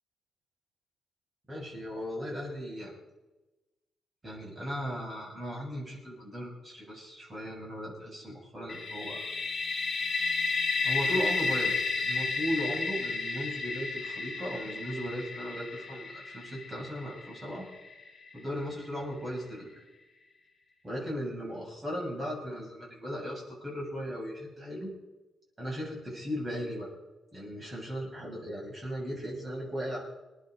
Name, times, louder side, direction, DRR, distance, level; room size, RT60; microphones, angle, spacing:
voice 1, 1.5-2.9 4.2-9.2 10.8-17.7 18.3-19.8 20.8-24.9 25.6-26.9 27.3-30.0, equal, 20° right, -4 dB, 7.6 m, -37 dB
sound 1, 8.7-18.4, left 4 dB, 25° left, 5.4 m, -32 dB
27.5 x 11.0 x 4.1 m, 1.1 s
cardioid pair, 155°, 0 cm